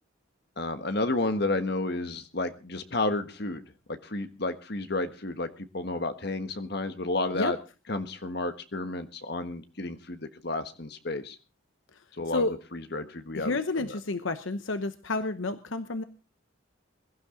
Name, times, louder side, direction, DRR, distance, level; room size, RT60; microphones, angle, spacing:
voice 1, 0.6-3.6 3.9-7.6 7.9-11.4 12.2-12.5 12.7-14.0, left 2 dB, 55° left, 9 dB, 1.4 m, -31 dB
voice 2, 13.3-16.0, left 3 dB, 75° left, 10 dB, 0.9 m, -30 dB
22.0 x 12.0 x 3.8 m, 0.33 s
head